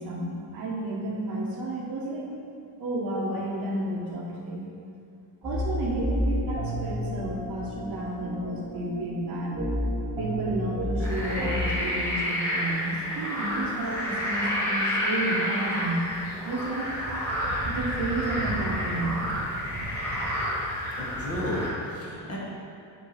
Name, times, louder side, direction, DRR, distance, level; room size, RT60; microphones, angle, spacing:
voice 1, 0.0-2.3 2.8-4.6 5.4-9.6 10.2-16.0 16.4-16.9 17.6-19.2, right 2 dB, 55° right, -3 dB, 1.0 m, -31 dB
sound 1, 5.4-11.7, equal, 10° right, 1.3 m, -31 dB
sound 2, 11.0-21.7, equal, 5° left, 1.0 m, -30 dB
voice 2, 21.0-22.4, left 1 dB, 35° left, -5 dB, 1.0 m, -32 dB
6.3 x 2.7 x 5.6 m, 2.5 s
wide cardioid pair, 180°, 43 cm